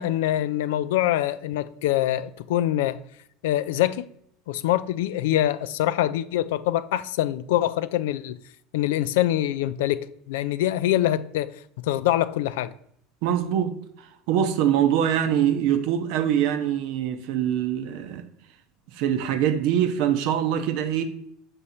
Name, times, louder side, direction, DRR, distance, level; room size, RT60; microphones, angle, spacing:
voice 1, 0.0-3.0 3.4-4.1 4.5-8.4 8.7-10.0 10.3-11.5 11.8-12.7, left 13 dB, 70° left, 0.3 m, -24 dB
voice 2, 13.2-13.8 14.3-18.3 19.0-21.0, right 10 dB, 60° right, 0.7 m, -23 dB
6.9 x 3.5 x 4.2 m
hypercardioid pair, 75°, 0 cm